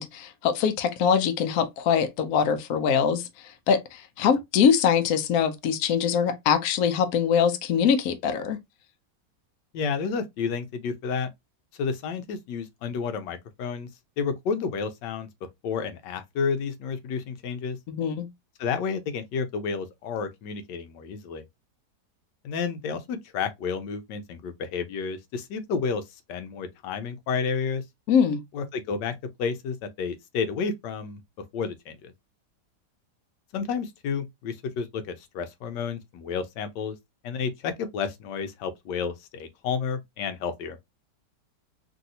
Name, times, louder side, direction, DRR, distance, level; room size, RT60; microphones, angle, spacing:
voice 1, 0.0-3.3 3.7-8.6 17.9-18.3 28.1-28.4, left 7 dB, 65° left, 1.0 m, -23 dB
voice 2, 9.7-11.3 11.8-13.9 14.2-15.3 15.6-17.8 18.6-21.4 22.4-26.0 26.3-27.8 28.5-29.1 29.4-31.2 31.5-32.1 33.5-36.9 37.2-40.8, left 5 dB, 85° left, 1.2 m, -31 dB
3.1 x 2.6 x 2.7 m
omnidirectional pair, 1.8 m